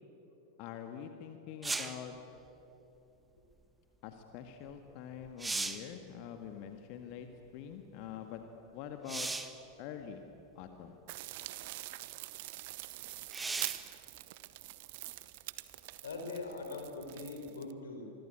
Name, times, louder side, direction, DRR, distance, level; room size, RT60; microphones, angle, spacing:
voice 1, 0.6-2.1 4.0-7.3 7.5-8.4 8.7-9.3 9.8-10.2 10.6-11.0, left 9 dB, 45° left, 6 dB, 1.8 m, -45 dB
sound 1, 1.6-2.1 4.7-4.8 5.2-5.9 9.1-9.6 10.6-10.7 13.3-13.9 17.5-17.6, right 3 dB, 10° right, 1.3 m, -37 dB
sound 2, 11.1-17.7, right 18 dB, 50° right, 1.0 m, -44 dB
voice 2, 16.0-18.1, left 3 dB, 65° left, 4 dB, 4.6 m, -42 dB
26.5 x 22.0 x 8.9 m, 3.0 s
figure-of-eight pair, 90°, 0 cm